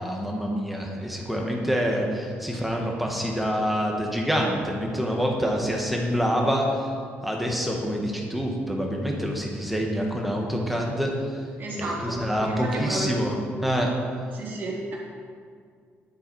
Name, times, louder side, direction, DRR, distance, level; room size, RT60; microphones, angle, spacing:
voice 1, 0.0-6.9 7.2-11.1 12.2-13.3 13.6-13.9, equal, ahead, -1 dB, 1.4 m, -26 dB
voice 2, 11.6-13.2 14.3-14.9, right 2 dB, 45° right, -5 dB, 3.5 m, -32 dB
11.5 x 10.0 x 4.7 m, 2.1 s
cardioid pair, 155°, 5 cm